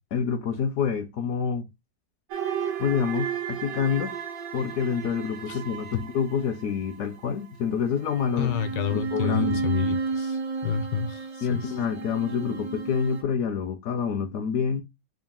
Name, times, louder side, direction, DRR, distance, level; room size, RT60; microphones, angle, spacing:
voice 1, 0.1-1.7 2.8-4.1 4.5-8.5 8.9-9.6 11.4-14.8, left 7 dB, 70° left, 0.8 m, -27 dB
sound 1, 2.3-7.0 8.0-13.2, right 5 dB, 65° right, 1.1 m, -32 dB
voice 2, 8.4-10.4 10.6-11.7, left 8 dB, 90° left, 1.3 m, -29 dB
3.8 x 2.4 x 3.6 m
omnidirectional pair, 1.9 m